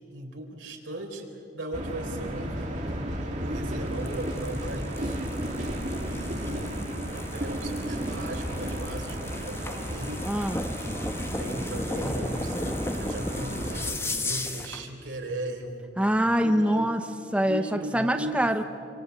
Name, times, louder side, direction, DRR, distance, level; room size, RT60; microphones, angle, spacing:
voice 1, 0.0-3.0 3.3-5.2 6.1-10.2 10.8-15.9 16.4-16.9 17.4-18.5, right 1 dB, 90° right, 2 dB, 4.4 m, -38 dB
sound 1, 1.7-13.9, right 1 dB, 40° right, 3.1 m, -33 dB
sound 2, 3.9-14.8, left 1 dB, 15° left, 1.4 m, -36 dB
voice 2, 10.2-10.6 16.0-17.0 17.3-17.6 17.9-18.6, equal, 5° right, 6 dB, 0.8 m, -24 dB
27.0 x 25.0 x 8.3 m, 2.5 s
head